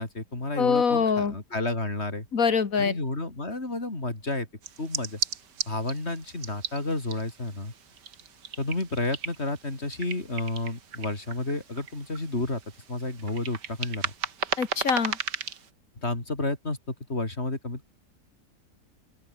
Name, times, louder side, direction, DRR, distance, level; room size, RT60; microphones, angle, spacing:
voice 1, 0.0-2.3 2.8-4.5 4.8-5.2 5.7-7.7 8.6-12.6 12.9-14.1 16.0-17.9, left 2 dB, 40° left, 4.6 m, -31 dB
voice 2, 0.6-1.3 2.3-3.0 14.6-15.2, left 5 dB, 55° left, 2.2 m, -24 dB
sound 1, 4.6-15.7, right 7 dB, 90° right, 2.3 m, -36 dB
open air
omnidirectional pair, 1.8 m